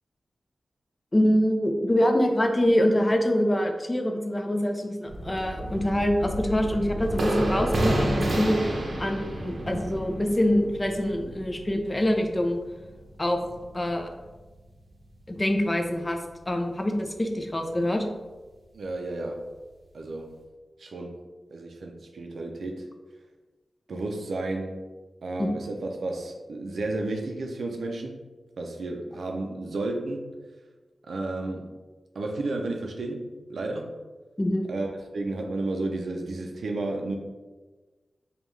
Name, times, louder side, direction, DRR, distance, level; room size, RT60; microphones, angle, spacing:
voice 1, 1.1-8.7 9.0-12.6 13.2-13.4 13.7-14.1 15.3-16.2 16.5-18.1 25.4-25.5 34.4-34.7, left 1 dB, 20° left, 4 dB, 0.4 m, -25 dB
sound 1, 5.1-14.4 14.6-14.7 15.1-15.2, right 1 dB, 50° right, 0.7 m, -31 dB
voice 2, 18.7-19.4 19.9-20.3 20.8-21.2 21.5-22.9 23.9-24.8 25.2-28.2 28.6-30.3 31.1-31.7 32.1-33.9 34.7-34.9 35.1-37.2, right 2 dB, 80° right, 2 dB, 0.4 m, -32 dB
5.2 x 2.3 x 3.1 m, 1.3 s
wide cardioid pair, 130°, 0 cm